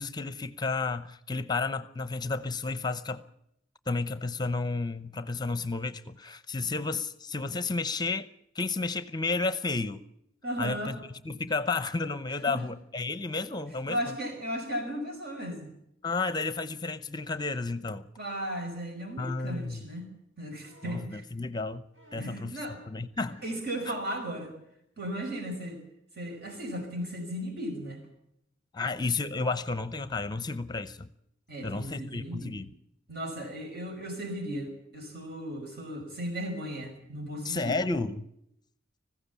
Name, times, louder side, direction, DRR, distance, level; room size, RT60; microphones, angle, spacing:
voice 1, 0.0-3.2 3.9-8.3 8.5-10.0 10.6-11.0 11.2-14.0 16.0-18.0 19.2-19.8 20.8-21.8 22.1-22.6 22.9-23.4 23.9-24.0 28.7-31.1 31.6-32.7 37.4-38.3, left 3 dB, 20° left, 0.8 m, -32 dB
voice 2, 10.4-11.0 12.5-12.6 13.9-15.7 18.2-20.1 20.4-21.2 22.2-22.8 23.2-24.5 25.0-25.8 26.2-28.0 31.5-32.6 33.1-37.8, equal, 55° right, 5.7 m, -36 dB
sound 1, 20.6-21.1 21.9-22.5 23.2-23.8 25.0-25.1, left 1 dB, 75° right, 5.8 m, -54 dB
20.5 x 15.5 x 8.3 m
head